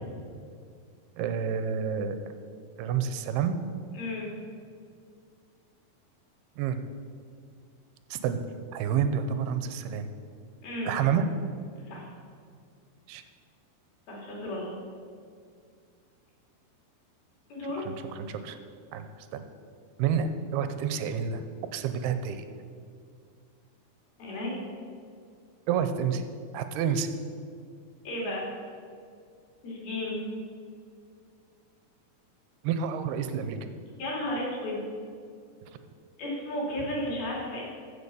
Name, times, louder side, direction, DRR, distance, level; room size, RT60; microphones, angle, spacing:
voice 1, 1.2-2.4 2.8-3.5 6.6-6.8 8.1-8.4 8.7-10.1 10.9-11.3 13.1-13.2 17.8-18.6 18.9-19.4 20.0-21.4 21.7-22.4 25.7-26.2 26.5-27.1 32.6-33.7, right 7 dB, 80° right, 9 dB, 2.7 m, -29 dB
voice 2, 3.9-4.3 10.6-10.9 11.9-12.1 14.1-14.7 17.5-17.8 24.2-24.6 28.0-28.5 29.6-30.2 34.0-34.8 36.2-37.6, left 1 dB, 65° left, -3 dB, 4.7 m, -33 dB
15.0 x 7.0 x 7.0 m, 2.2 s
omnidirectional pair, 4.6 m